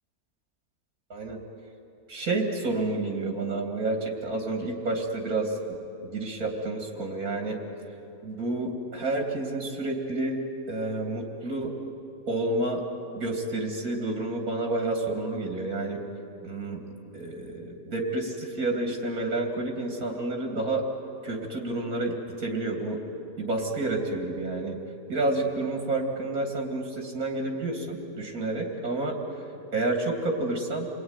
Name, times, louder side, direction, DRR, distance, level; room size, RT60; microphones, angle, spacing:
voice 1, 2.1-5.6 6.0-7.6 8.2-10.4 10.7-11.7 12.3-12.8 13.1-16.0 16.4-16.8 17.1-20.8 21.2-23.0 23.4-24.8 25.1-29.2 29.7-30.9, right 2 dB, 85° right, 2 dB, 3.1 m, -29 dB
29.0 x 21.0 x 9.7 m, 2.8 s
omnidirectional pair, 1.5 m